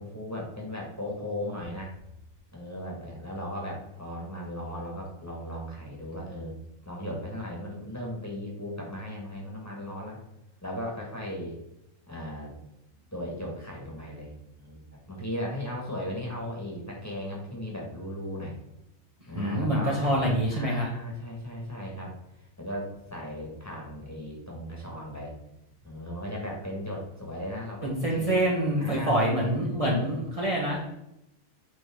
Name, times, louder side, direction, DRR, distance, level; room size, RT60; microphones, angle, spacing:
voice 1, 0.0-1.9 2.5-6.6 6.9-10.2 10.6-11.6 12.1-12.6 13.1-14.8 15.1-18.6 19.3-25.4 25.8-28.4 28.8-30.1, left 1 dB, 10° left, -3 dB, 1.9 m, -37 dB
voice 2, 19.3-20.9 27.8-30.8, right 1 dB, 25° right, -4 dB, 1.3 m, -26 dB
9.0 x 3.9 x 3.7 m, 0.86 s
omnidirectional pair, 1.4 m